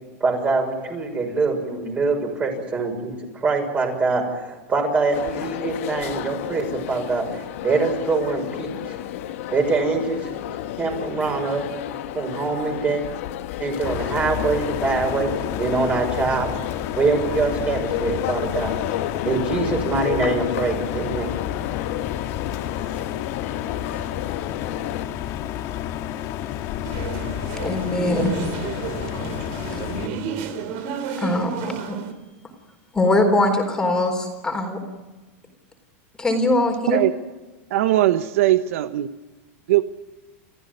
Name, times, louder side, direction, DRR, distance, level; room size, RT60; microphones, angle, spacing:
voice 1, 0.2-8.9 9.5-10.3 10.8-11.7 12.1-13.0 13.6-15.3 15.6-16.5 17.0-18.8 19.2-21.3, right 4 dB, 20° right, 3 dB, 6.5 m, -24 dB
sound 1, 5.1-25.0, left 12 dB, 70° left, 1.6 m, -31 dB
sound 2, 13.8-30.1, left 11 dB, 45° left, 1.9 m, -30 dB
sound 3, 26.8-32.1, right 6 dB, 55° right, 3.6 m, -31 dB
voice 2, 27.6-28.3 29.7-29.8 31.2-32.0 32.9-34.8 36.2-37.0, left 2 dB, 10° left, 3 dB, 4.1 m, -21 dB
voice 3, 37.7-39.1 39.7-39.8, right 14 dB, 75° right, 11 dB, 1.1 m, -19 dB
30.0 x 15.0 x 9.7 m, 1.3 s
supercardioid pair, 150°, 7 cm